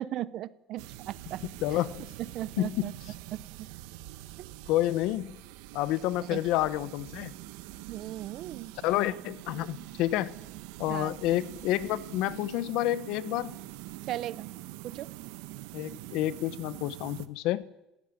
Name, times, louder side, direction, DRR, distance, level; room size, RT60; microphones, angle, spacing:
voice 1, 0.0-1.4 1.7-1.8 2.3-2.9 3.3-3.7 4.4-4.5 6.3-6.4 7.9-8.7 10.9-11.2 11.4-11.5 14.1-14.5 14.8-15.1, right 13 dB, 40° right, 17 dB, 0.8 m, -37 dB
sound 1, 0.8-17.3, right 16 dB, 85° right, 1.1 m, -45 dB
voice 2, 1.6-2.1 2.6-2.8 4.7-5.4 5.7-7.3 8.8-10.3 10.8-13.6 15.7-17.6, left 14 dB, 55° left, 16 dB, 1.0 m, -29 dB
20.5 x 16.5 x 9.0 m, 0.92 s
cardioid pair, 180°, 0 cm